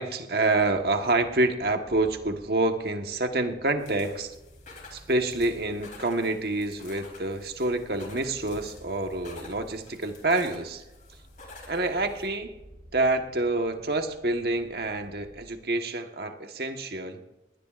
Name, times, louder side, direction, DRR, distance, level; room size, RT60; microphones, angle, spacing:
voice 1, 0.0-4.3 4.9-10.8 11.7-12.5 12.9-17.2, right 2 dB, 65° right, 5 dB, 1.3 m, -27 dB
sound 1, 0.6-15.4, equal, 30° right, 6.5 m, -53 dB
sound 2, 3.8-12.3, left 3 dB, 45° left, 3.7 m, -50 dB
20.5 x 18.5 x 2.5 m, 0.98 s
head